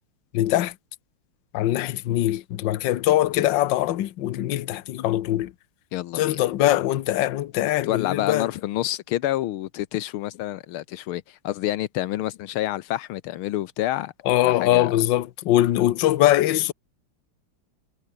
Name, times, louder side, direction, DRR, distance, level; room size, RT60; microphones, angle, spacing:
voice 1, 0.3-0.7 1.5-5.5 6.1-8.5 14.2-16.7, left 14 dB, 65° left, 1.5 m, -22 dB
voice 2, 5.9-6.4 7.9-14.1 14.4-15.0, left 14 dB, 85° left, 1.6 m, -28 dB
omnidirectional pair, 2.3 m